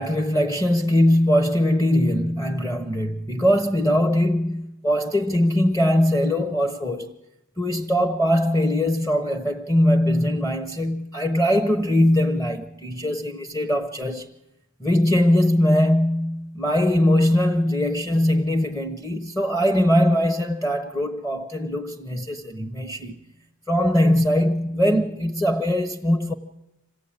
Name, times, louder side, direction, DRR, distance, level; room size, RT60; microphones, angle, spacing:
voice 1, 0.0-7.1 7.6-14.3 14.8-23.1 23.7-26.3, left 1 dB, 15° left, 0.9 m, -21 dB
27.0 x 16.0 x 8.9 m
head